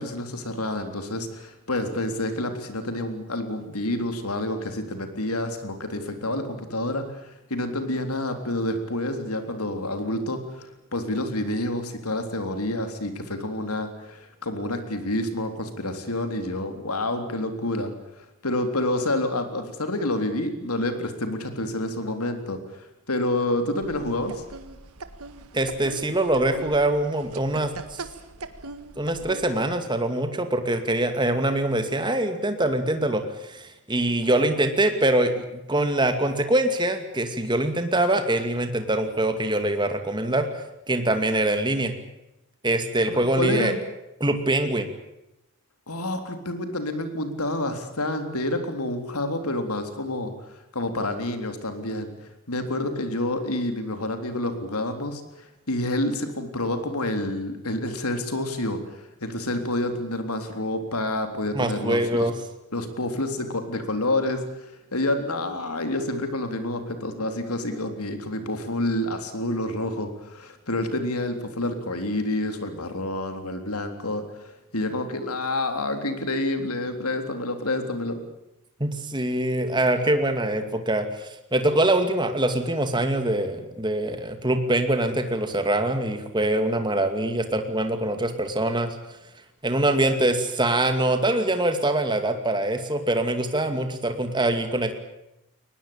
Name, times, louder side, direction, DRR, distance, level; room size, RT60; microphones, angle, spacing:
voice 1, 0.0-24.4 43.1-43.8 45.9-62.3 62.7-78.2, left 1 dB, 85° left, 7 dB, 3.6 m, -28 dB
sound 1, 23.8-29.7, right 3 dB, 85° right, 1.8 m, -41 dB
voice 2, 25.5-28.0 29.0-40.5 40.9-41.9 42.6-43.7 44.2-44.9 61.5-62.3 78.8-89.0 89.6-95.0, right 1 dB, 20° right, 7 dB, 2.4 m, -24 dB
22.5 x 20.0 x 8.8 m, 0.89 s
head